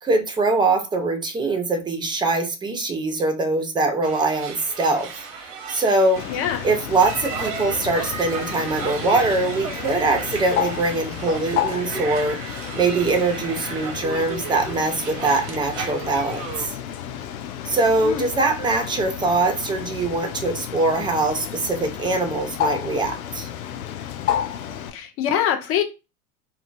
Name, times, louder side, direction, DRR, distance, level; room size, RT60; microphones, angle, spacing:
voice 1, 0.0-5.1 5.4-6.2 6.6-16.8 17.6-23.5, right 3 dB, 10° right, 0.6 m, -23 dB
sound 1, 4.0-16.7, right 5 dB, 45° right, 0.7 m, -34 dB
Bird, 6.2-24.9, left 10 dB, 70° left, 0.6 m, -32 dB
voice 2, 6.3-6.6 18.0-18.3 24.9-25.8, left 9 dB, 30° left, 0.7 m, -24 dB
2.8 x 2.3 x 2.5 m
figure-of-eight pair, 80°, 45 cm